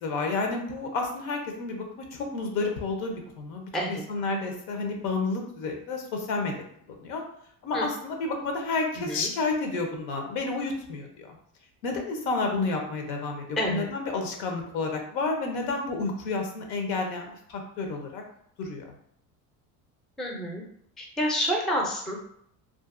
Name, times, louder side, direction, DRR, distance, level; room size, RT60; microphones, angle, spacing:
voice 1, 0.0-6.5 7.0-7.2 7.6-11.3 11.8-18.2 18.6-18.9, left 3 dB, 90° left, 3 dB, 0.7 m, -30 dB
voice 2, 20.2-20.6 21.0-22.2, equal, ahead, 0 dB, 0.3 m, -28 dB
2.6 x 2.6 x 2.4 m, 0.68 s
cardioid pair, 115°, 41 cm